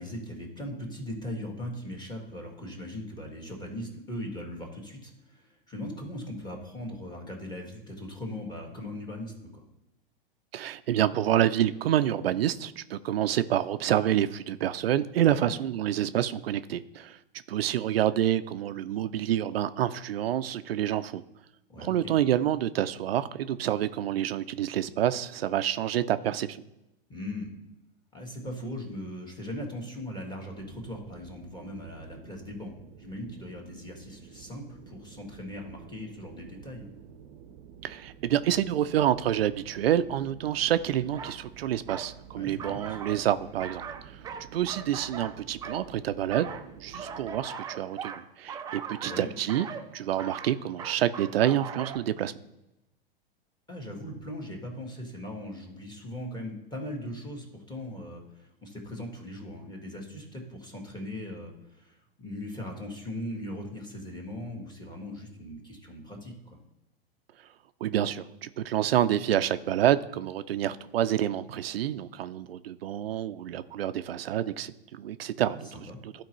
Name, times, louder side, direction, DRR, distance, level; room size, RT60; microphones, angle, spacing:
voice 1, 0.0-9.6 15.2-15.5 21.7-22.1 27.1-27.5 28.1-32.7 33.0-36.9 42.3-43.0 49.0-49.3 53.7-66.6 75.5-76.0, left 1 dB, 15° left, 0 dB, 1.7 m, -39 dB
voice 2, 10.5-17.2 17.5-21.2 21.8-26.6 37.8-44.2 44.5-46.5 46.8-49.7 49.9-52.3 67.8-75.7 76.0-76.2, right 11 dB, 80° right, 12 dB, 0.5 m, -28 dB
sound 1, 30.6-47.5, right 8 dB, 45° right, 0.7 m, -50 dB
sound 2, 41.1-41.4 41.9-42.1 42.6-43.3 43.6-45.9 46.3-52.0, right 6 dB, 15° right, 0.3 m, -39 dB
12.0 x 4.4 x 3.1 m, 0.93 s
hypercardioid pair, 110°, 30 cm